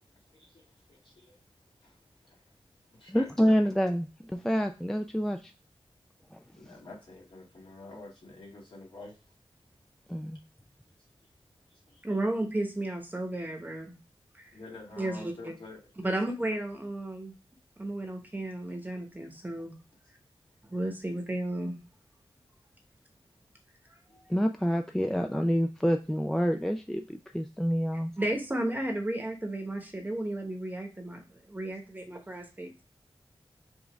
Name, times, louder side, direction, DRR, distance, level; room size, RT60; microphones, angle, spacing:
voice 1, 0.0-1.4 1.8-2.0 2.2-2.6 2.9-3.5 6.6-9.2 11.7-12.0 14.5-16.2 24.1-24.2, left 2 dB, 60° left, 2.0 m, -48 dB
voice 2, 3.1-5.5 6.3-6.4 10.1-10.4 24.3-28.1, equal, 5° left, 0.3 m, -27 dB
voice 3, 12.0-13.9 14.3-14.6 15.0-15.5 16.0-17.3 17.8-19.8 20.7-21.8 24.1-24.2 28.2-32.8, right 1 dB, 20° right, 1.0 m, -33 dB
5.0 x 2.5 x 3.4 m
wide cardioid pair, 100°, 9 cm